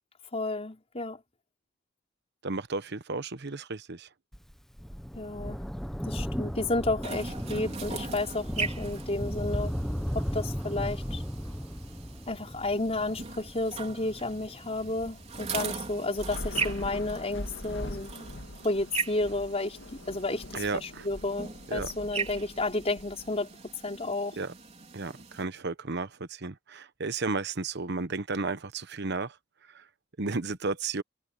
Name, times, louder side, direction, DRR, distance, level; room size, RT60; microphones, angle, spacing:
voice 1, 0.3-1.2 5.1-5.6 6.1-9.7 10.1-11.2 12.3-18.1 18.6-19.8 20.1-23.5 23.8-24.4, left 2 dB, 30° left, 4.6 m, -31 dB
voice 2, 2.4-4.1 20.5-21.1 21.7-21.9 24.4-24.5 24.9-29.3 30.2-31.0, right 3 dB, 60° right, 1.1 m, -33 dB
Thunder, 4.3-17.2 18.1-18.2, equal, ahead, 1.2 m, -36 dB
sound 1, 7.0-25.4, right 5 dB, 35° right, 3.6 m, -40 dB
Thunder / Rain, 16.1-23.7, left 1 dB, 65° left, 2.1 m, -42 dB
head